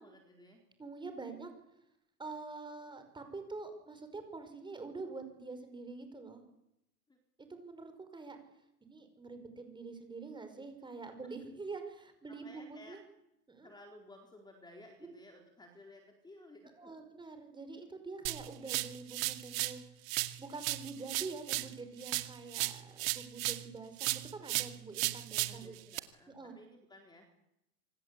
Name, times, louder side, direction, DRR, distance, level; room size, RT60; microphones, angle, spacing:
voice 1, 0.0-0.6 7.1-7.2 12.3-13.0 13.6-16.9 25.5-27.3, left 1 dB, 10° left, 3 dB, 4.2 m, -56 dB
voice 2, 0.8-1.5 2.2-6.4 7.4-8.4 8.8-13.0 13.5-13.7 15.0-15.1 16.8-19.8 20.4-25.8 26.3-26.5, right 3 dB, 10° right, 7 dB, 5.3 m, -46 dB
sound 1, 18.3-19.8 20.1-23.7 24.0-26.0, right 19 dB, 55° right, 2.2 m, -36 dB
26.0 x 25.5 x 8.5 m, 0.83 s
supercardioid pair, 140°, 48 cm